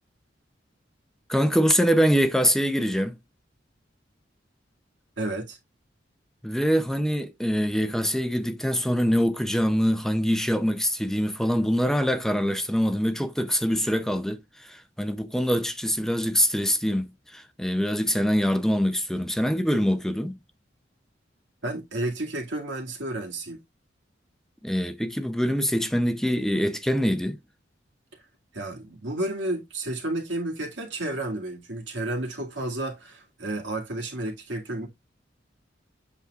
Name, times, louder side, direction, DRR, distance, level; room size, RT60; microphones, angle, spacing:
voice 1, 1.3-3.2 6.4-20.4 24.6-27.4, equal, 5° left, 0.6 m, -24 dB
voice 2, 5.2-5.6 21.6-23.6 28.5-34.9, right 1 dB, 80° right, 2.3 m, -31 dB
8.1 x 6.0 x 2.4 m
head